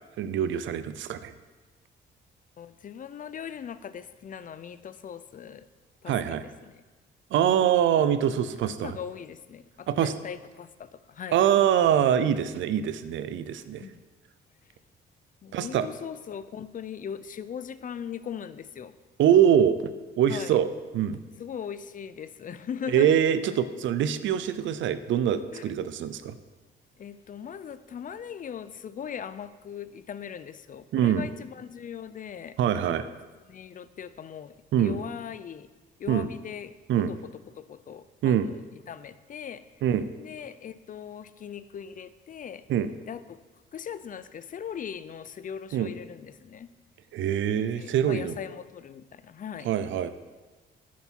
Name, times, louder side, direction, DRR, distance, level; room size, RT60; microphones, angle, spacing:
voice 1, 0.2-1.3 6.1-6.4 7.3-8.9 9.9-10.1 11.3-13.8 15.5-15.9 19.2-19.9 20.2-20.7 20.9-21.2 22.9-26.3 30.9-31.3 32.6-33.1 34.7-35.0 36.1-36.3 36.9-37.1 38.2-38.5 39.8-40.1 42.7-42.9 45.7-45.9 47.1-48.4 49.6-50.1, right 9 dB, 75° right, 13 dB, 0.6 m, -24 dB
voice 2, 2.6-5.7 6.0-6.8 8.8-11.4 13.8-14.0 15.4-19.0 20.3-20.6 21.4-23.1 25.5-25.6 27.0-33.1 33.5-35.7 36.0-36.8 37.1-37.2 37.5-39.6 40.2-42.6 43.1-43.4 43.7-46.7 47.6-49.7, left 8 dB, 45° left, 14 dB, 0.5 m, -39 dB
10.0 x 7.2 x 4.5 m, 1.3 s
cardioid pair, 90°, 20 cm